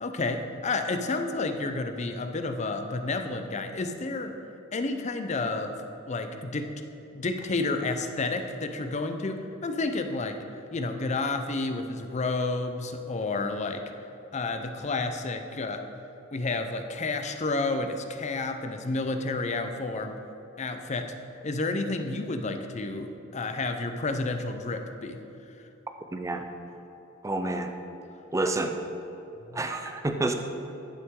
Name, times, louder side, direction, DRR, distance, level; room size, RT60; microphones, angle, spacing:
voice 1, 0.0-4.3 4.7-6.7 7.1-10.4 10.7-13.8 14.3-15.9 16.3-20.2 20.6-21.1 21.4-25.2 29.5-29.6, left 3 dB, 35° left, 7 dB, 0.5 m, -30 dB
voice 2, 26.1-26.5 27.2-27.7 28.3-28.8 29.5-30.3, right 2 dB, 15° right, 6 dB, 0.5 m, -28 dB
11.0 x 5.9 x 3.7 m, 2.9 s
head